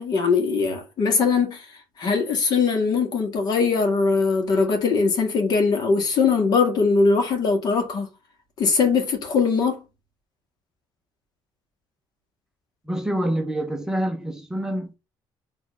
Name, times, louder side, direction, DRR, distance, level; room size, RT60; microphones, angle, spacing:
voice 1, 0.0-1.6 2.0-8.1 8.6-9.8, left 4 dB, 55° left, 2.1 m, -21 dB
voice 2, 12.9-15.0, right 1 dB, 5° right, 0.8 m, -26 dB
5.4 x 3.5 x 5.4 m
cardioid pair, 155°, 8 cm